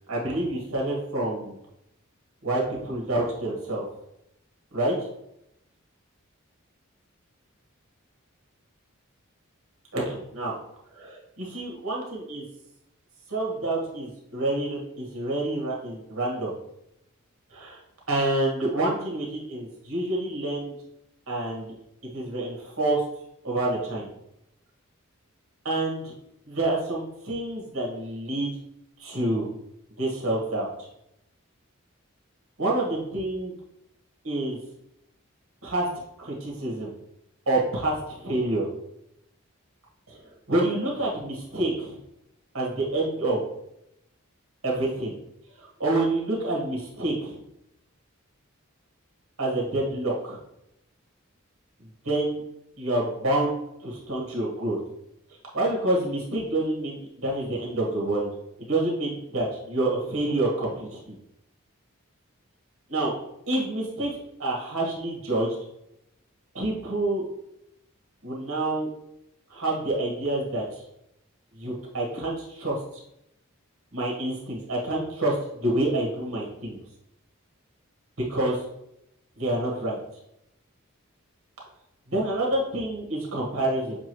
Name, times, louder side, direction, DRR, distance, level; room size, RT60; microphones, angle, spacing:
voice 1, 0.1-1.6 2.4-3.8 4.7-5.0 9.9-10.5 11.0-12.4 13.3-16.5 17.5-17.8 18.1-20.7 21.3-21.7 22.1-23.0 23.4-24.1 25.6-26.2 26.5-28.5 29.0-29.5 30.0-30.9 32.6-33.5 34.2-34.6 35.6-35.9 36.2-36.9 37.5-38.7 40.1-40.2 40.5-42.0 42.5-43.4 44.6-45.2 45.6-47.4 49.4-50.4 52.0-52.4 52.8-53.5 53.8-54.8 55.5-58.3 58.6-61.2 62.9-63.1 63.5-65.5 66.5-67.3 68.2-68.9 69.5-70.8 71.5-72.8 73.9-76.8 78.3-78.6 79.4-80.0 82.1-84.0, right 2 dB, 75° right, -3 dB, 1.5 m, -27 dB
7.0 x 2.4 x 3.1 m, 0.82 s
head